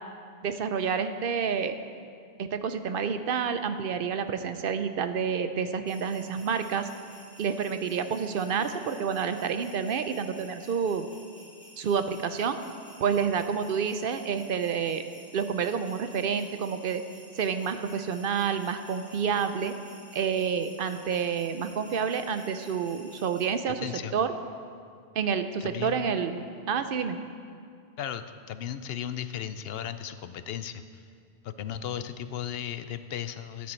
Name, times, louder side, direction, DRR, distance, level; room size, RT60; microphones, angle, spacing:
voice 1, 0.4-1.7 2.4-6.9 7.4-11.1 11.8-12.6 13.0-15.0 15.3-17.0 17.4-19.7 20.1-24.3 25.2-27.2, right 6 dB, 65° right, 9 dB, 0.7 m, -29 dB
sound 1, 5.9-23.5, equal, 25° right, 2.7 m, -52 dB
voice 2, 23.8-24.1 25.6-26.0 28.0-30.8 31.4-33.7, left 10 dB, 75° left, 11 dB, 0.8 m, -36 dB
13.5 x 9.5 x 4.4 m, 2.3 s
omnidirectional pair, 1.1 m